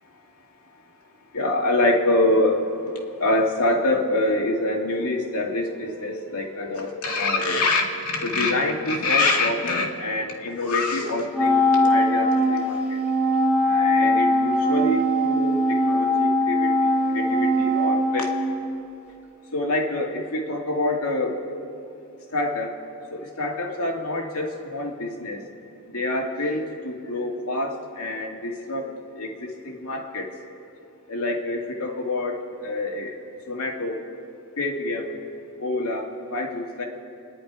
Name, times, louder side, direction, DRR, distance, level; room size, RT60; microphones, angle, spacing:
voice 1, 1.3-2.6 3.2-13.0 13.7-18.3 19.5-21.4 22.3-22.7 23.1-25.4 25.9-28.9 29.1-30.3 31.1-33.1 33.5-34.0 34.6-35.1 35.6-36.8, left 2 dB, 85° left, 0 dB, 2.2 m, -26 dB
Wind instrument woodwind instrument, 11.3-19.0, equal, 5° right, 2.6 m, -21 dB
28.0 x 10.5 x 4.9 m, 2.6 s
head